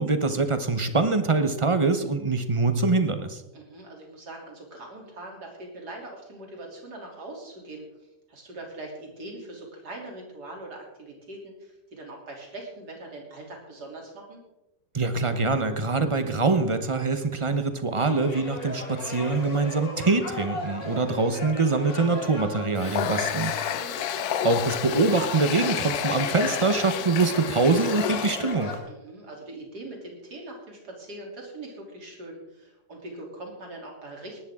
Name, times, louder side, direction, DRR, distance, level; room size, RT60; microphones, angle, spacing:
voice 1, 0.0-3.4 14.9-23.5 24.4-28.8, right 3 dB, 30° right, 9 dB, 0.6 m, -24 dB
voice 2, 3.5-7.8 8.3-14.4 23.5-24.0 28.8-34.4, right 2 dB, 65° right, 0 dB, 3.7 m, -42 dB
sound 1, 18.0-28.8, left 2 dB, 90° left, 3.4 m, -36 dB
Water tap faucet, 22.8-28.6, left 11 dB, 70° left, 1.0 m, -31 dB
19.0 x 11.5 x 3.7 m, 0.95 s
omnidirectional pair, 1.9 m